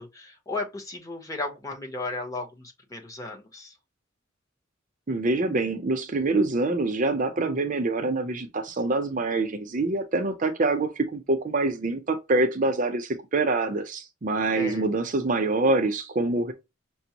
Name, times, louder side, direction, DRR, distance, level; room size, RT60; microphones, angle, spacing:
voice 1, 0.0-3.7 14.5-14.9, left 2 dB, 15° left, 0.9 m, -35 dB
voice 2, 5.1-16.5, right 2 dB, 40° right, 0.6 m, -25 dB
5.9 x 2.0 x 2.8 m
head